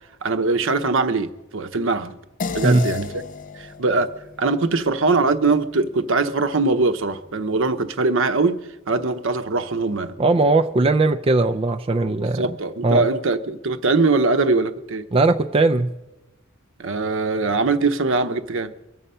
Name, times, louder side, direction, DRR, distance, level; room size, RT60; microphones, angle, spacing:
voice 1, 0.2-2.1 2.5-3.2 3.5-8.6 8.9-10.2 12.2-15.0 16.8-18.7, right 3 dB, 65° right, 0.8 m, -22 dB
sound 1, 2.4-7.1, left 6 dB, 40° left, 0.5 m, -35 dB
voice 2, 10.2-12.4 12.8-13.1 15.1-15.9, right 2 dB, 25° right, 0.4 m, -18 dB
23.5 x 8.0 x 5.5 m
head